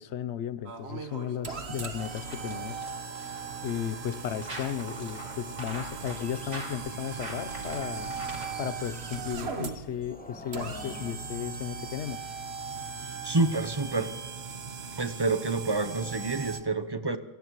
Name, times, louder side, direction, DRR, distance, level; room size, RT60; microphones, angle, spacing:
voice 1, 0.0-2.9 3.6-8.1 8.6-12.2, left 9 dB, 75° left, 15 dB, 1.0 m, -35 dB
sound 1, 0.6-16.6, right 5 dB, 60° right, 1.5 m, -38 dB
sound 2, 2.0-8.7, right 1 dB, 90° right, 4.1 m, -43 dB
Nature ambient, 5.1-11.1, left 1 dB, 10° left, 1.1 m, -50 dB
voice 2, 13.2-14.1 15.0-17.2, right 3 dB, 25° right, 10 dB, 0.7 m, -28 dB
26.5 x 18.0 x 3.1 m, 1.2 s
omnidirectional pair, 1.2 m